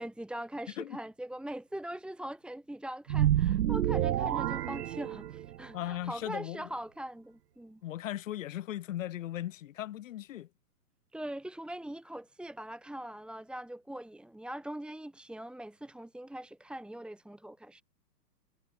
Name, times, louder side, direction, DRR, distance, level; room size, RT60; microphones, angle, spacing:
voice 1, 0.0-7.8 11.1-17.8, right 1 dB, ahead, 2.9 m, -42 dB
sound 1, 3.1-5.7, right 12 dB, 70° right, 0.6 m, -28 dB
voice 2, 5.7-6.7 7.8-10.5, left 13 dB, 50° left, 3.3 m, -38 dB
figure-of-eight pair, 115°, 49 cm